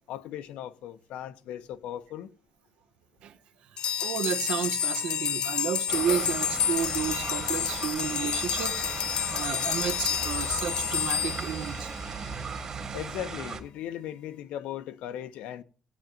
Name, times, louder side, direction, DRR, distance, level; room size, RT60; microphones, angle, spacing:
voice 1, 0.0-2.3 12.9-15.6, left 11 dB, 75° left, 0.9 m, -38 dB
sound 1, 3.8-12.3, left 9 dB, 45° left, 0.6 m, -30 dB
voice 2, 4.0-8.8 9.1-11.9, right 8 dB, 65° right, 1.2 m, -32 dB
sound 2, 5.9-13.6, right 5 dB, 30° right, 1.9 m, -37 dB
17.5 x 9.0 x 2.5 m
cardioid pair, 170°, 2 cm